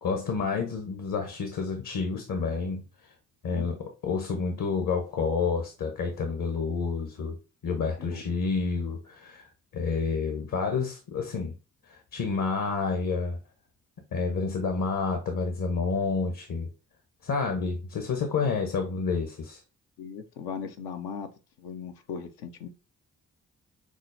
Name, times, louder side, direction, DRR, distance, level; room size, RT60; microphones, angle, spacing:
voice 1, 0.0-2.8 3.4-7.4 7.6-9.4 9.7-11.5 11.9-13.4 14.1-16.7 17.2-19.6, left 4 dB, 60° left, 0.9 m, -29 dB
voice 2, 7.8-8.2 20.0-21.3 21.6-22.7, left 7 dB, 85° left, 0.6 m, -38 dB
6.0 x 2.0 x 2.6 m
supercardioid pair, 45°, 38 cm